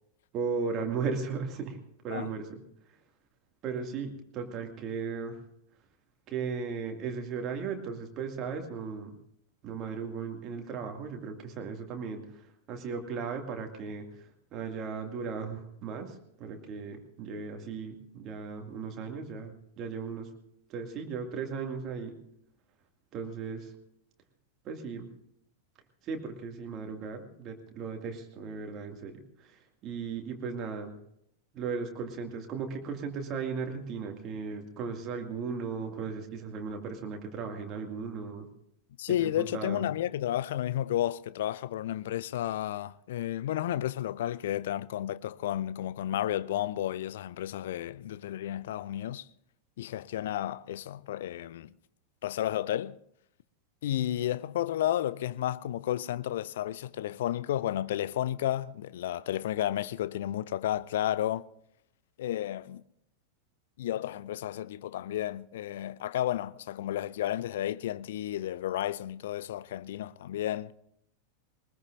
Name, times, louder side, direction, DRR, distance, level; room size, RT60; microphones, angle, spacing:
voice 1, 0.3-1.8 2.0-2.6 3.6-5.4 6.3-9.2 9.6-20.3 20.7-22.2 23.1-23.7 24.6-25.1 26.0-31.0 31.5-38.5 39.2-39.9, right 5 dB, 35° right, 2.3 m, -36 dB
voice 2, 39.0-49.3 49.8-51.7 52.2-53.0 53.8-61.4 62.2-62.8 63.8-70.7, left 12 dB, 55° left, 0.5 m, -32 dB
22.0 x 20.5 x 2.6 m
figure-of-eight pair, 90°, 0 cm